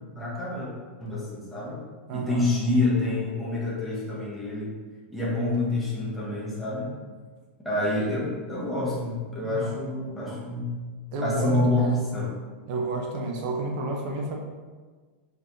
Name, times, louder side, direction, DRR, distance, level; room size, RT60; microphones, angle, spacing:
voice 1, 0.1-0.7 1.0-1.8 2.1-4.7 5.1-6.9 7.6-10.7 11.2-12.3, left 2 dB, ahead, -8 dB, 0.9 m, -27 dB
voice 2, 2.1-2.5 9.4-9.8 11.1-11.7 12.7-14.3, right 2 dB, 40° right, 0 dB, 0.6 m, -30 dB
4.4 x 3.1 x 2.6 m, 1.4 s
supercardioid pair, 165°, 6 cm